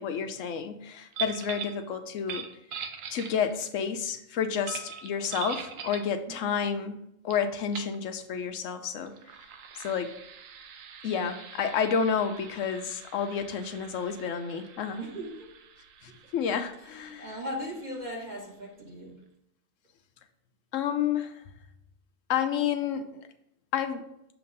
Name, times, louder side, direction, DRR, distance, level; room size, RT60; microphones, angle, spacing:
voice 1, 0.0-2.5 3.1-7.0 7.2-9.1 9.8-10.1 11.0-15.0 16.0-17.4 20.7-21.4 22.3-23.1 23.7-24.0, left 7 dB, 80° left, 8 dB, 1.0 m, -30 dB
sound 1, 1.1-1.8 2.2-3.7 4.7-6.1 7.3-7.4 7.7-8.0 9.0-18.3, right 7 dB, 80° right, 1.0 m, -43 dB
voice 2, 15.0-15.5 16.1-16.3 17.2-19.2, equal, 35° right, -3 dB, 1.6 m, -38 dB
6.9 x 2.8 x 5.3 m, 0.78 s
omnidirectional pair, 1.3 m